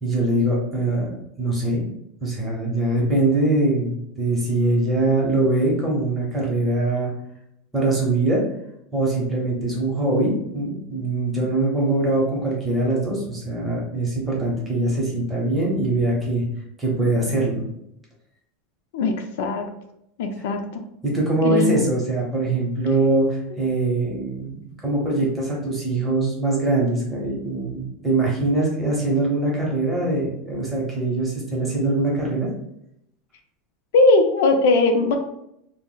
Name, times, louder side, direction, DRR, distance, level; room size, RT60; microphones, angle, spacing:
voice 1, 0.0-1.1 1.4-1.8 2.2-7.1 7.7-8.4 8.9-16.4 16.8-17.7 21.0-32.5, right 2 dB, 10° right, -4 dB, 0.7 m, -22 dB
voice 2, 18.9-19.6 20.2-20.8 21.4-21.8 33.9-35.2, left 3 dB, 70° left, 5 dB, 0.4 m, -19 dB
2.2 x 2.0 x 3.8 m, 0.78 s
supercardioid pair, 170°, 0 cm